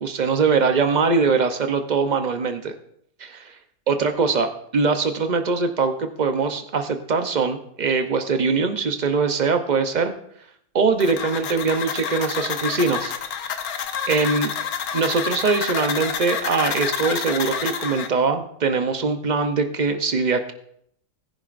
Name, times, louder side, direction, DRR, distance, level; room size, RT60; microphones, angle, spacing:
voice 1, 0.0-2.7 3.2-3.5 3.9-10.1 10.7-13.1 14.1-14.5 14.9-20.5, right 4 dB, 50° right, 7 dB, 0.5 m, -22 dB
sound 1, 11.0-18.1, left 7 dB, 65° left, 1.2 m, -28 dB
19.5 x 10.5 x 2.5 m, 0.71 s
omnidirectional pair, 1.8 m